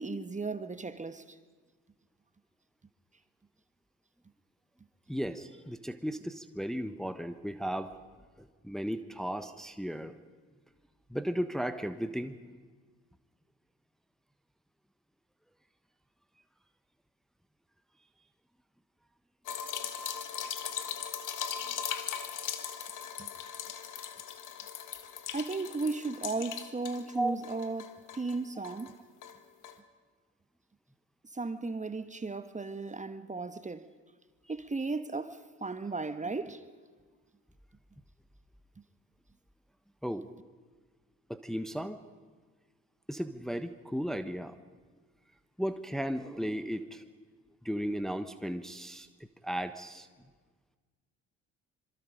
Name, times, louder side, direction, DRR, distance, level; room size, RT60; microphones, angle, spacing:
voice 1, 0.0-1.4 23.2-23.3 25.3-29.0 31.3-33.9 34.5-36.6, right 3 dB, 20° right, 1.3 m, -35 dB
voice 2, 5.1-7.9 8.6-10.1 11.1-12.4 27.1-27.4 28.6-28.7 40.0-40.3 41.3-42.0 43.1-44.5 45.6-47.0 47.6-49.1 49.4-50.1, equal, ahead, 1.2 m, -35 dB
sound 1, 19.5-27.2 27.4-28.9 29.2-29.4 29.6-29.8, left 8 dB, 55° left, 1.8 m, -39 dB
26.0 x 23.0 x 5.1 m
hypercardioid pair, 50°, 37 cm